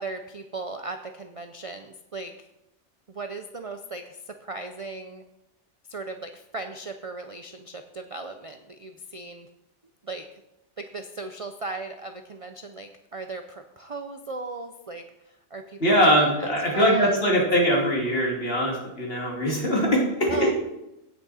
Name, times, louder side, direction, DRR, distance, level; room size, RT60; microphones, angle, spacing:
voice 1, 0.0-2.5 3.1-5.2 5.9-9.5 10.0-10.3 10.8-16.1 16.4-16.5 16.7-17.4 20.3-20.5, right 3 dB, 40° right, 6 dB, 0.5 m, -37 dB
voice 2, 15.8-20.5, equal, 50° left, -2 dB, 2.7 m, -22 dB
16.5 x 6.3 x 4.2 m, 0.92 s
omnidirectional pair, 1.3 m